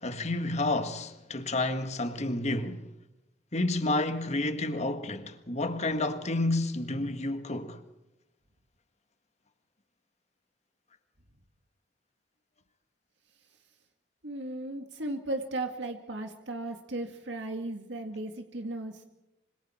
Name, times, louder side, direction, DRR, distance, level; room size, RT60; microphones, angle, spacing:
voice 1, 0.0-2.9 3.5-7.8, left 2 dB, 40° left, 1.8 m, -30 dB
voice 2, 14.2-19.0, right 2 dB, 70° right, 2.0 m, -36 dB
26.0 x 26.0 x 4.4 m
head